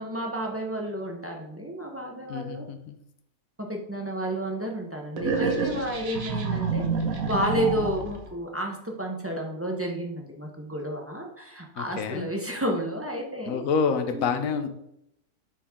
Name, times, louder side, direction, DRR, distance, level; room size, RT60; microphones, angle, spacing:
voice 1, 0.0-2.7 3.6-6.8 7.2-13.6 14.1-14.7, right 1 dB, 10° right, 0 dB, 0.9 m, -31 dB
voice 2, 2.3-3.0 7.6-7.9 11.8-12.3 13.4-14.7, left 6 dB, 70° left, 7 dB, 1.2 m, -28 dB
sound 1, 5.2-8.2, right 4 dB, 70° right, 1.5 m, -28 dB
10.0 x 4.5 x 3.7 m, 0.78 s
omnidirectional pair, 1.5 m